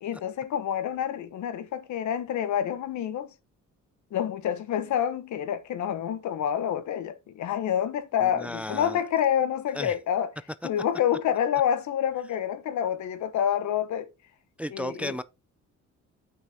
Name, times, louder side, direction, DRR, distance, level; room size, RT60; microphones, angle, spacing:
voice 1, 0.0-3.3 4.1-10.3 10.6-14.1 14.7-15.1, left 9 dB, 70° left, 1.1 m, -28 dB
voice 2, 8.2-9.0 9.7-9.9 14.6-15.2, left 1 dB, 5° right, 0.4 m, -34 dB
8.1 x 6.0 x 3.4 m
cardioid pair, 90°, 30 cm